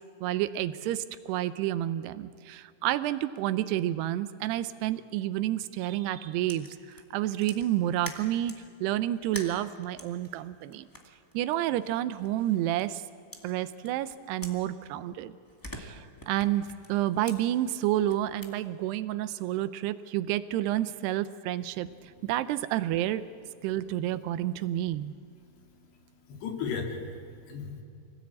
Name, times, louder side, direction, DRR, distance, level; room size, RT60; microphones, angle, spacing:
voice 1, 0.2-6.7 7.1-10.9 11.3-13.0 13.4-15.3 15.7-23.2 23.6-25.1, right 13 dB, 90° right, 13 dB, 2.8 m, -30 dB
sound 1, 6.5-8.7 9.2-13.0 13.3-15.2 15.4-18.5, left 1 dB, 25° left, 0.4 m, -47 dB
voice 2, 25.5-25.9 26.2-27.8, left 5 dB, 80° left, 2 dB, 4.4 m, -36 dB
25.0 x 17.5 x 8.6 m, 2.3 s
omnidirectional pair, 4.6 m